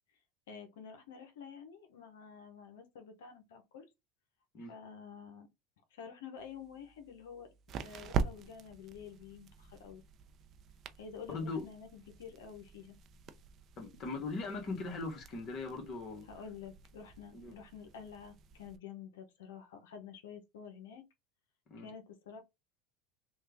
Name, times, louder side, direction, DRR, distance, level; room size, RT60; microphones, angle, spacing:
voice 1, 0.5-3.8 4.7-5.5 5.9-10.0 11.0-13.0 16.3-21.0 21.8-22.4, left 7 dB, 85° left, 0.8 m, -49 dB
sound 1, 6.4-18.8, right 6 dB, 45° right, 0.5 m, -44 dB
voice 2, 11.3-11.7 13.8-16.3 17.3-17.5 21.7-21.9, left 3 dB, 45° left, 1.3 m, -39 dB
3.2 x 2.4 x 3.4 m
hypercardioid pair, 95°, 0 cm